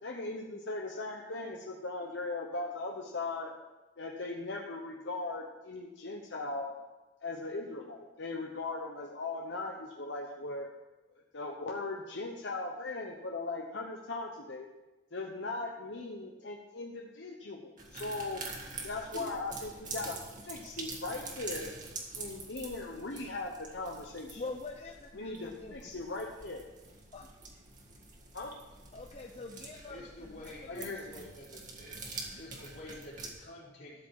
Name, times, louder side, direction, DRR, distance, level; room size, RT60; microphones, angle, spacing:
voice 1, 0.0-3.5 4.0-6.7 7.2-10.7 11.1-14.7 15.1-18.4 18.8-21.7 22.1-24.4 25.1-26.6 28.3-28.5 30.7-31.0, left 3 dB, 80° left, 0 dB, 1.0 m, -39 dB
sound 1, 17.8-33.3, right 3 dB, 45° right, 1.9 m, -46 dB
voice 2, 24.4-26.1 27.1-27.3 28.9-31.3 32.3-32.6, left 3 dB, 35° left, 2 dB, 0.7 m, -45 dB
voice 3, 29.9-32.0 32.4-34.1, left 1 dB, 60° left, -5 dB, 4.0 m, -48 dB
13.0 x 5.2 x 7.6 m, 1.1 s
head